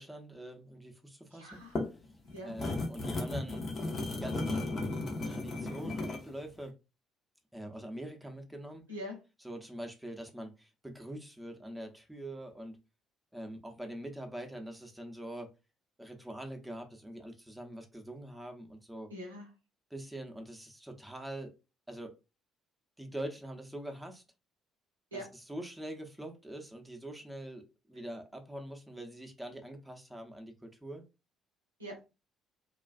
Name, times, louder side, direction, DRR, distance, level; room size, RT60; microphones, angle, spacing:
voice 1, 0.0-1.6 2.4-3.7 4.1-4.9 5.2-6.7 7.5-8.8 9.4-12.8 13.3-15.5 16.0-19.1 19.9-21.5 21.9-22.1 23.0-24.2 25.1-25.2 25.5-31.1, right 1 dB, 5° right, 0.7 m, -44 dB
voice 2, 1.3-1.8 2.2-2.5 8.9-9.2 19.1-19.5 25.1-25.3 31.8-32.1, equal, 90° right, 0.7 m, -43 dB
sound 1, 1.5-6.3, left 2 dB, 45° left, 0.7 m, -35 dB
2.4 x 2.3 x 2.4 m
figure-of-eight pair, 50°, 0 cm